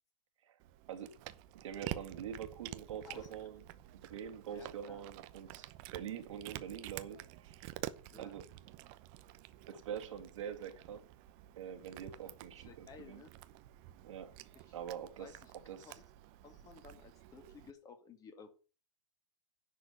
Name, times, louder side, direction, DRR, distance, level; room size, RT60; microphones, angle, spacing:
Cat, 0.6-17.7, right 15 dB, 35° right, 0.8 m, -50 dB
voice 1, 0.9-1.2 1.5-3.6 4.0-7.8 8.2-8.5 9.7-11.0 11.6-13.2 14.0-14.3 14.7-15.4 15.7-16.0, right 8 dB, 70° right, 5 dB, 2.3 m, -45 dB
voice 2, 3.0-3.4 4.5-5.0 8.1-8.4 12.6-13.3 14.7-14.8 15.2-15.5 15.8-15.9 16.4-18.5, left 5 dB, 20° left, 7 dB, 2.0 m, -55 dB
10.5 x 5.0 x 8.1 m, 0.36 s
hypercardioid pair, 145°, 17 cm